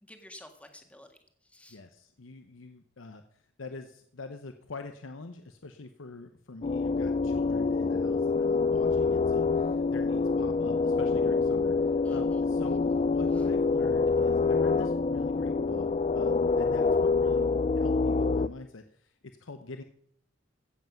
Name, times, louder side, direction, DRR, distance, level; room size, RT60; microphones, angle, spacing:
voice 1, 0.0-1.8 12.0-12.4, left 1 dB, 5° left, 6 dB, 1.6 m, -52 dB
voice 2, 1.7-19.8, left 3 dB, 80° left, 7 dB, 0.9 m, -44 dB
sound 1, 6.6-18.5, left 4 dB, 35° left, 0.4 m, -26 dB
15.5 x 8.0 x 5.9 m, 0.63 s
head